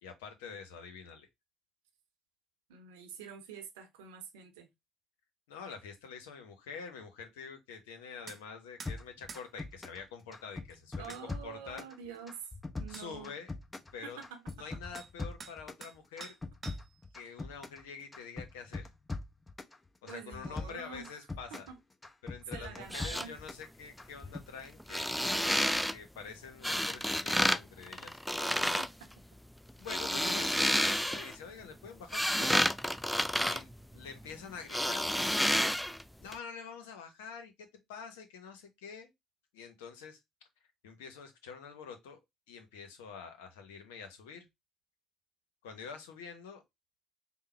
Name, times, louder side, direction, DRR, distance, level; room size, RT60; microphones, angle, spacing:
voice 1, 0.0-1.3 5.5-11.8 12.9-13.5 13.9-14.2 14.5-16.4 17.1-18.9 20.0-21.7 22.2-25.1 25.9-28.1 29.8-32.7 33.3-35.1 36.2-39.1 39.5-40.2 40.8-42.2 42.5-44.5 45.6-46.6, left 6 dB, 80° left, 0.8 m, -46 dB
voice 2, 2.7-4.7 11.0-12.4 12.8-13.3 14.0-14.7 20.1-21.1 21.5-21.8 22.5-23.4 28.8-29.1, right 7 dB, 80° right, 0.8 m, -47 dB
sound 1, 8.3-8.4 8.8-9.0 9.3-9.5 10.7-10.8 11.1-11.2 12.4-12.5 12.9-13.1 14.5-14.6 14.9-15.1 15.4-16.0 16.2-17.0, right 4 dB, 40° right, 0.7 m, -47 dB
sound 2, 8.9-10.0 10.3-11.9 12.3-13.9 14.2-15.8 16.2-17.8 18.1-19.8 20.1-21.7 22.0-23.7 24.0-24.5, left 3 dB, 20° left, 0.8 m, -41 dB
sound 3, 22.8-23.3 24.8-25.9 26.6-27.6 27.9-28.9 29.7-31.3 31.8-34.3 34.7-36.0 36.3-36.4, equal, ahead, 0.3 m, -30 dB
3.7 x 2.2 x 4.3 m
hypercardioid pair, 55°, 0 cm